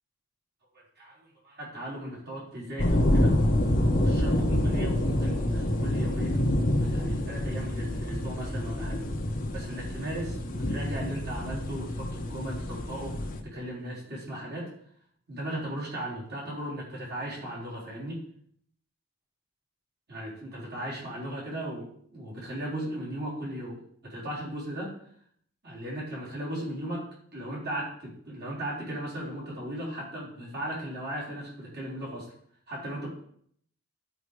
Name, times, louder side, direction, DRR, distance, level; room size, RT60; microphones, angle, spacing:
voice 1, 0.7-3.4 4.0-9.0 9.5-14.7 15.3-18.2 20.1-24.9 25.6-32.3 32.7-33.1, right 1 dB, 55° right, -5 dB, 3.9 m, -37 dB
sound 1, 2.8-13.4, left 1 dB, 45° left, 1.1 m, -27 dB
12.0 x 4.9 x 4.9 m, 0.65 s
head